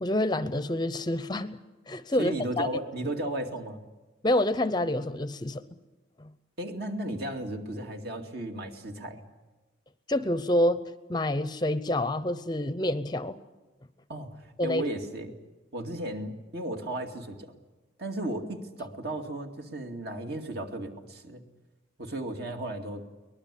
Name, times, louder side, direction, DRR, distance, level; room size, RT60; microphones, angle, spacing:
voice 1, 0.0-1.6 1.9-2.7 4.2-5.6 10.1-10.8 11.1-13.4 14.6-14.8, left 1 dB, 20° left, 12 dB, 0.7 m, -27 dB
voice 2, 2.2-3.8 6.6-9.2 14.1-15.3 15.7-17.5 18.0-21.4 22.0-23.0, right 1 dB, 55° right, 3 dB, 2.5 m, -35 dB
23.5 x 20.0 x 8.5 m, 1.2 s
head